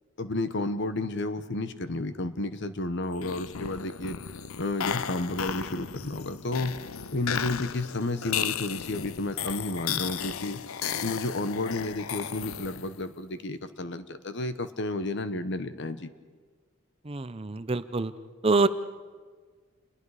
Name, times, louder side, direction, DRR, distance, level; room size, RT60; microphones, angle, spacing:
voice 1, 0.2-4.2 4.6-6.7 7.1-10.6 11.0-16.1, left 2 dB, 55° left, 11 dB, 1.1 m, -31 dB
sound 1, 3.1-13.0, left 8 dB, 80° left, 0.6 m, -35 dB
voice 2, 17.1-18.1 18.4-18.7, right 3 dB, 25° right, 13 dB, 0.6 m, -25 dB
28.5 x 21.0 x 4.9 m, 1.5 s
head